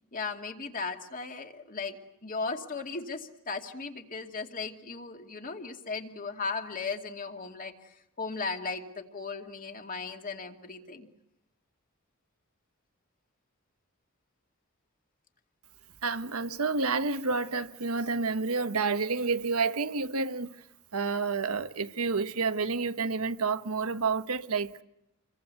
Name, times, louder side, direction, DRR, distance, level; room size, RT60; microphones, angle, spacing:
voice 1, 0.1-11.1, left 4 dB, 40° left, 2.4 m, -37 dB
voice 2, 16.0-20.5 20.9-24.8, right 4 dB, 75° right, 1.2 m, -29 dB
28.0 x 22.5 x 8.3 m
head